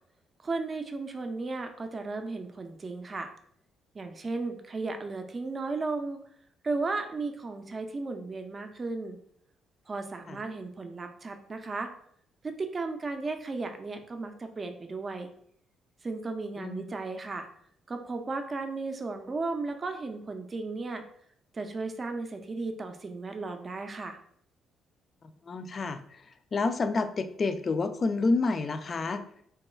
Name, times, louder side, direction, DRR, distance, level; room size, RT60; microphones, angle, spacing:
voice 1, 0.4-3.3 3.9-6.2 6.6-9.2 9.9-11.9 12.4-15.3 16.0-17.5 17.9-21.0 21.5-24.2, right 3 dB, 30° right, 6 dB, 0.4 m, -35 dB
voice 2, 25.5-26.2 26.5-29.2, left 3 dB, 35° left, 9 dB, 0.3 m, -29 dB
3.0 x 2.3 x 4.1 m, 0.67 s
cardioid pair, 110°, 0 cm